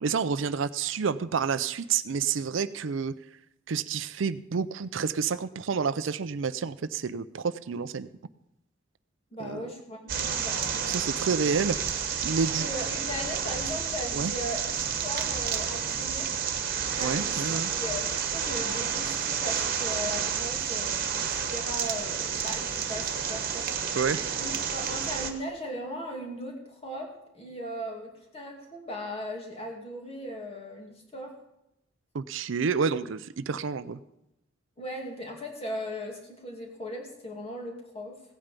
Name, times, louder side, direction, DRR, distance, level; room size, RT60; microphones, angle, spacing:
voice 1, 0.0-3.1 3.7-8.1 9.4-9.7 10.9-12.7 14.1-14.3 17.0-17.7 24.0-24.4 32.1-34.0, right 5 dB, 70° right, 14 dB, 0.5 m, -29 dB
voice 2, 9.3-10.8 11.4-11.5 12.6-14.7 15.0-16.3 16.9-24.0 24.4-31.3 34.8-38.2, equal, 30° left, 1 dB, 2.5 m, -38 dB
sound 1, 10.1-25.3, right 7 dB, 50° right, 1.4 m, -30 dB
16.0 x 8.9 x 5.2 m, 0.87 s
head